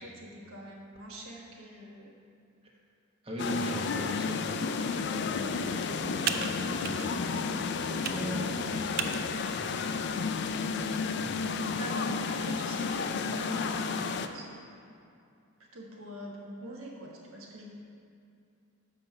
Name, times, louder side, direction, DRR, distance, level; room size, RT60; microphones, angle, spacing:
voice 1, 0.0-2.2 3.7-4.6 11.8-14.6 15.7-17.7, equal, 75° right, -2 dB, 1.3 m, -44 dB
voice 2, 3.2-4.4 5.0-9.6 11.1-11.3, equal, 25° right, -2 dB, 1.0 m, -40 dB
sound 1, 3.4-14.3, left 5 dB, 50° left, 0.3 m, -32 dB
Computer keyboard, 4.8-11.6, right 7 dB, 45° right, 0.3 m, -40 dB
6.9 x 5.4 x 5.8 m, 2.5 s
head